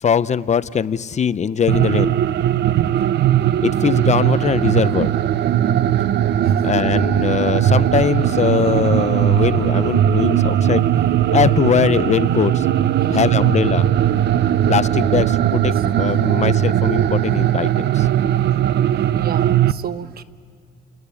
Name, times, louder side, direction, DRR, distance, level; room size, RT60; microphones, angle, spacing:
voice 1, 0.0-2.2 3.6-5.1 6.6-10.9 11.3-12.7 13.1-13.9 14.7-18.1, left 7 dB, 40° left, 15 dB, 0.7 m, -21 dB
sound 1, 1.7-19.7, right 11 dB, 80° right, 0.7 m, -18 dB
voice 2, 19.1-20.2, right 9 dB, 60° right, 12 dB, 1.0 m, -32 dB
30.0 x 20.5 x 8.4 m, 2.1 s
cardioid pair, 105°, 17 cm